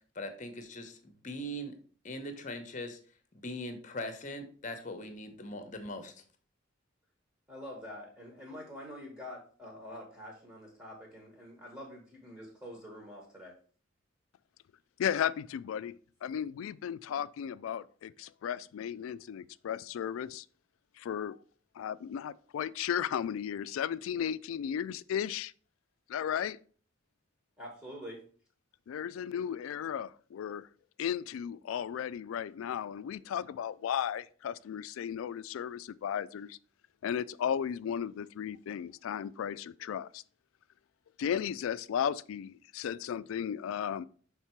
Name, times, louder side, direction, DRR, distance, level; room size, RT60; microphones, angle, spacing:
voice 1, 0.1-1.7 2.0-3.0 3.3-6.1, left 1 dB, 40° left, 0.9 m, -40 dB
voice 2, 7.5-13.5 27.6-28.2, equal, 15° right, 1.3 m, -46 dB
voice 3, 15.0-20.5 21.0-21.4 21.8-25.5 26.1-26.6 28.9-30.7 31.0-36.6 37.0-40.2 41.2-44.1, left 9 dB, 85° left, 0.3 m, -35 dB
5.8 x 3.6 x 4.4 m
head